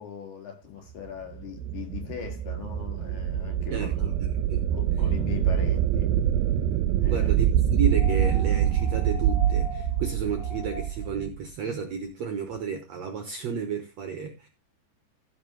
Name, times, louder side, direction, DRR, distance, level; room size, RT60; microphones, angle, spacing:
voice 1, 0.0-4.2 4.7-6.1 7.0-7.4, left 8 dB, 55° left, 5.0 m, -40 dB
sound 1, 1.3-11.4, right 10 dB, 90° right, 2.5 m, -25 dB
voice 2, 3.7-4.7 7.1-14.5, right 6 dB, 65° right, 1.8 m, -32 dB
sound 2, 7.9-11.1 12.5-12.6, left 3 dB, 20° left, 5.2 m, -41 dB
15.5 x 5.2 x 4.6 m
omnidirectional pair, 4.2 m